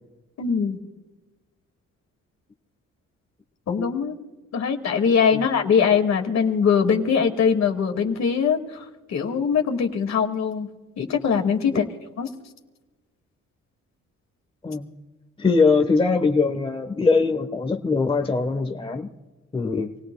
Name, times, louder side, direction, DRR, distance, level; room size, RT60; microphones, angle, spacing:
voice 1, 0.4-0.8 3.7-4.2 4.5-8.8 9.1-10.7 11.0-11.9 12.2-12.3, left 6 dB, 60° left, 4 dB, 2.2 m, -22 dB
voice 2, 15.4-19.1 19.5-19.9, left 4 dB, 15° left, 4 dB, 1.2 m, -22 dB
27.5 x 17.5 x 2.3 m, 1.2 s
cardioid pair, 90°, 30 cm